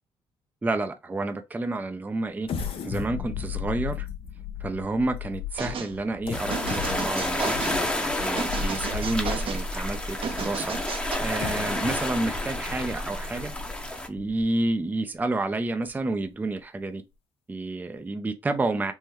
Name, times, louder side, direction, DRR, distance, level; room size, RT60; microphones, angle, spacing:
voice 1, 0.6-2.5 2.8-4.1 4.6-7.9 8.2-10.8 11.2-13.5 14.1-17.0 17.5-18.9, right 2 dB, 15° right, 0.4 m, -29 dB
sound 1, 2.4-9.6 10.2-10.3 11.2-14.7 15.2-15.3 15.7-15.9, left 8 dB, 60° left, 0.6 m, -36 dB
sound 2, 5.6-5.9 6.5-7.8 8.4-9.6 10.2-11.1, right 5 dB, 55° right, 0.6 m, -33 dB
sound 3, 6.3-14.1, left 1 dB, 10° left, 0.7 m, -30 dB
3.6 x 2.1 x 2.9 m
supercardioid pair, 65°, 11 cm